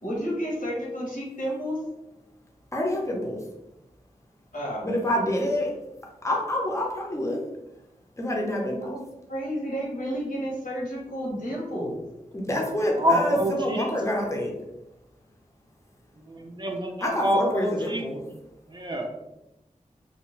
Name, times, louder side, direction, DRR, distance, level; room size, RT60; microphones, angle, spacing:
voice 1, 0.0-1.8 4.5-4.9 8.9-9.0 9.3-12.0, equal, 70° left, -4 dB, 1.1 m, -31 dB
voice 2, 2.7-3.4 4.8-5.7 6.2-7.4 8.2-9.0 12.3-14.5 17.0-18.2, left 1 dB, 20° left, -1 dB, 0.7 m, -27 dB
voice 3, 13.0-13.9 16.3-18.0 18.7-19.1, equal, 30° right, 1 dB, 0.5 m, -26 dB
2.5 x 2.1 x 3.1 m, 0.94 s
wide cardioid pair, 50°, 14 cm